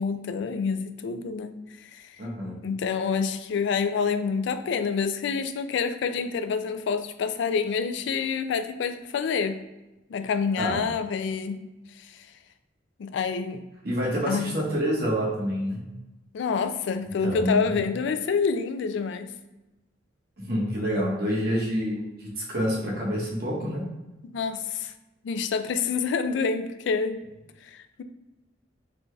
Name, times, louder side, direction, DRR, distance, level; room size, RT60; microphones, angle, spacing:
voice 1, 0.0-1.5 1.9-2.1 2.6-9.6 10.1-11.6 13.0-13.6 14.3-14.5 16.3-19.3 24.2-24.9 25.2-27.2 27.6-28.0, left 5 dB, 70° left, 9 dB, 0.3 m, -27 dB
voice 2, 2.2-2.6 10.6-10.8 13.8-15.8 17.2-17.7 20.4-23.8, equal, 55° right, -4 dB, 1.1 m, -27 dB
3.9 x 2.3 x 3.2 m, 1.0 s
head